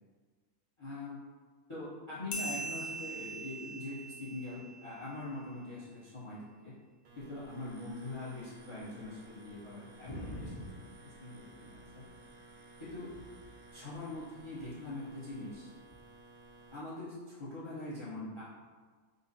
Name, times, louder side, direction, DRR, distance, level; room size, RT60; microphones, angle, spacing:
voice 1, 0.8-1.2 1.7-6.8 7.2-10.5 10.8-12.1 12.8-13.1 13.7-15.7 16.7-18.4, left 2 dB, 30° left, -8 dB, 0.7 m, -43 dB
sound 1, 2.3-5.4, right 2 dB, 65° left, 0.5 m, -41 dB
sound 2, 7.1-16.8, right 2 dB, 65° right, 0.9 m, -56 dB
sound 3, 10.1-12.3 12.7-13.6 14.5-14.8 15.8-16.0, equal, 85° left, 1.4 m, -47 dB
3.9 x 2.0 x 4.0 m, 1.5 s
omnidirectional pair, 1.5 m